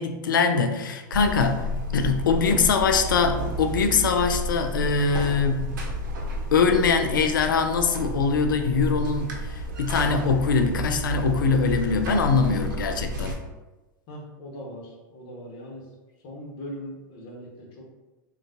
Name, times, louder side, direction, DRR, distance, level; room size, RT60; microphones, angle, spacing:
voice 1, 0.0-1.7 1.9-5.7 6.5-13.4, left 5 dB, 80° left, 7 dB, 0.4 m, -23 dB
Buzz, 1.1-13.3, right 1 dB, 70° right, 0.8 m, -31 dB
voice 2, 14.1-15.9 16.2-17.9, equal, 45° left, -1 dB, 1.1 m, -40 dB
3.7 x 2.3 x 2.6 m, 1.1 s
hypercardioid pair, 95°, 11 cm